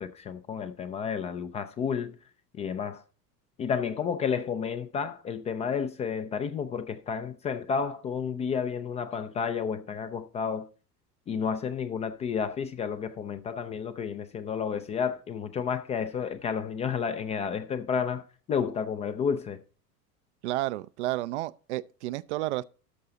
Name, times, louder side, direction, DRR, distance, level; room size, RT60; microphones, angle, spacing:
voice 1, 0.0-2.2 2.5-3.0 3.6-10.7 11.3-19.6, left 6 dB, 15° left, 0.4 m, -31 dB
voice 2, 20.4-22.6, right 16 dB, 50° right, 0.5 m, -31 dB
13.0 x 5.5 x 3.9 m
figure-of-eight pair, 80°, 47 cm